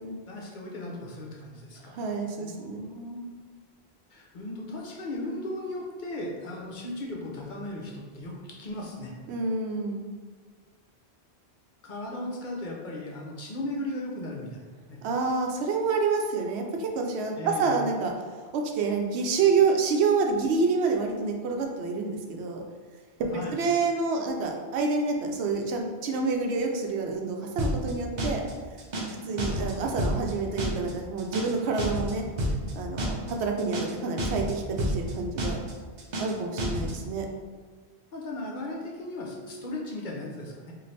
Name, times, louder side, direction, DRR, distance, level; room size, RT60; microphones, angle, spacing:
voice 1, 0.3-2.0 2.4-3.2 4.1-9.1 11.8-15.0 17.4-17.8 23.3-23.6 29.5-30.2 38.1-40.7, left 1 dB, 55° left, -2 dB, 0.7 m, -37 dB
voice 2, 1.9-2.9 9.3-10.0 15.0-18.1 18.5-22.6 23.2-28.4 29.2-32.2 32.7-35.6 36.2-37.3, right 4 dB, 85° right, 2 dB, 0.8 m, -28 dB
sound 1, 27.6-27.9 28.2-28.5 28.8-29.1 29.4-29.7 30.0-30.3 30.6-30.9 31.2-31.5 31.8-32.1 32.4-32.7 33.0-33.3 33.6-33.9 34.2-34.5 34.8-35.1 35.4-35.7 36.0-36.3 36.6-36.9, equal, 50° right, 0.7 m, -29 dB
4.0 x 2.4 x 3.2 m, 1.5 s
omnidirectional pair, 1.1 m